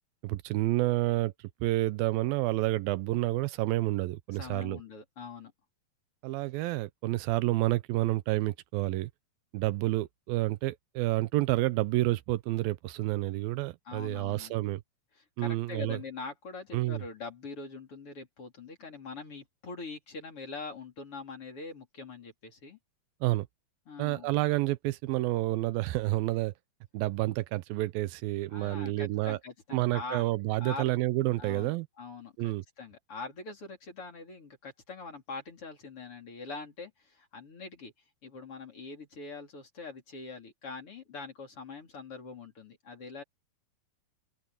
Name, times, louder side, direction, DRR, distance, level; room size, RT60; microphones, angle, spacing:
voice 1, 0.2-1.3 1.6-4.8 6.2-9.1 9.5-14.8 15.4-16.0 16.7-17.0 23.2-23.5 24.0-26.5 26.9-29.4 29.7-31.9 32.4-32.6, right 18 dB, 85° right, 2.4 m, -29 dB
voice 2, 4.3-5.5 13.8-14.6 15.1-22.8 23.9-24.4 28.5-30.2 30.6-31.0 31.4-37.9 38.2-43.2, left 4 dB, 40° left, 4.5 m, -43 dB
open air
omnidirectional pair, 4.2 m